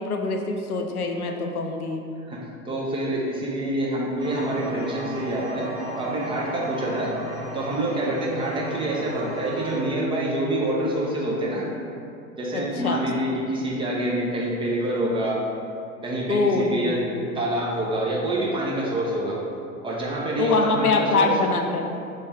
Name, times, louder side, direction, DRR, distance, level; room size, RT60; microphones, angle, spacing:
voice 1, 0.0-2.0 12.5-13.0 16.3-17.0 20.4-21.9, left 3 dB, 90° left, 3 dB, 0.5 m, -24 dB
voice 2, 2.3-5.7 6.0-7.1 7.5-11.6 12.4-15.4 16.0-19.4 19.8-21.4, right 1 dB, 15° right, -4 dB, 0.3 m, -26 dB
sound 1, 4.2-9.8, equal, 80° right, 1.0 m, -35 dB
3.3 x 3.0 x 4.6 m, 2.6 s
figure-of-eight pair, 85°, 43 cm